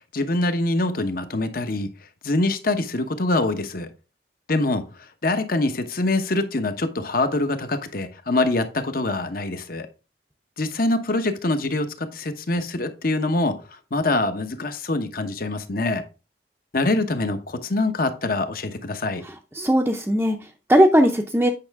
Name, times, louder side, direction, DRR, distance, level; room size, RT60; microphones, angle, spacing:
voice 1, 0.1-1.9 2.2-3.9 4.5-4.9 5.2-9.9 10.6-13.6 13.9-16.0 16.7-19.2, left 2 dB, 55° left, 1.0 m, -24 dB
voice 2, 19.5-21.5, equal, 10° right, 0.6 m, -18 dB
8.8 x 5.5 x 3.5 m
head